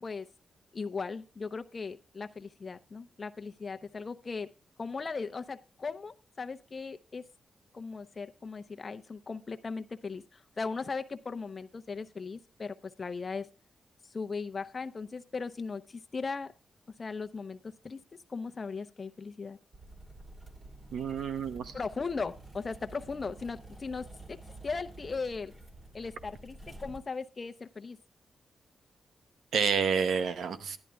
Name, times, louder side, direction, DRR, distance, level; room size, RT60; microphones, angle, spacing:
voice 1, 0.7-4.5 4.8-7.2 7.7-13.5 14.0-16.5 17.0-18.0 18.3-19.6 21.7-24.4 24.6-25.5 25.9-28.0, left 4 dB, 40° left, 9 dB, 0.7 m, -38 dB
sound 1, 19.7-27.0, right 2 dB, 30° right, 2.2 m, -50 dB
voice 2, 20.9-21.7 29.5-30.8, right 6 dB, 85° right, 11 dB, 0.9 m, -29 dB
11.0 x 11.0 x 3.5 m, 0.31 s
cardioid pair, 95°, 0 cm